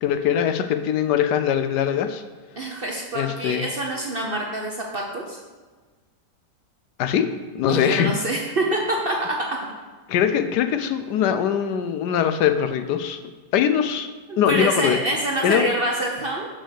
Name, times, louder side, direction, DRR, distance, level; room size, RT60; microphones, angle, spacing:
voice 1, 0.0-2.2 3.1-3.6 7.0-7.3 7.5-8.1 10.1-13.2 13.5-14.1 14.4-15.0 15.4-15.7, left 9 dB, 75° left, 9 dB, 1.2 m, -22 dB
voice 2, 2.6-5.4 7.7-9.7 14.3-16.5, right 1 dB, 45° right, 0 dB, 0.8 m, -26 dB
5.7 x 5.7 x 6.5 m, 1.4 s
omnidirectional pair, 1.8 m